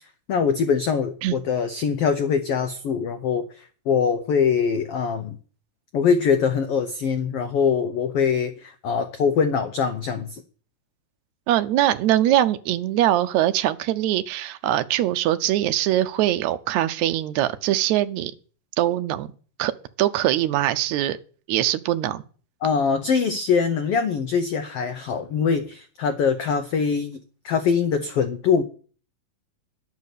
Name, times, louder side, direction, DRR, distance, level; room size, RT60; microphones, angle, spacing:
voice 1, 0.3-5.4 5.9-10.4 22.6-27.2 27.4-28.6, left 6 dB, 90° left, 1.3 m, -23 dB
voice 2, 11.5-18.3 18.8-19.3 19.6-19.7 20.0-21.2 21.5-22.2, right 13 dB, 75° right, 1.8 m, -22 dB
11.0 x 8.2 x 6.7 m
omnidirectional pair, 3.7 m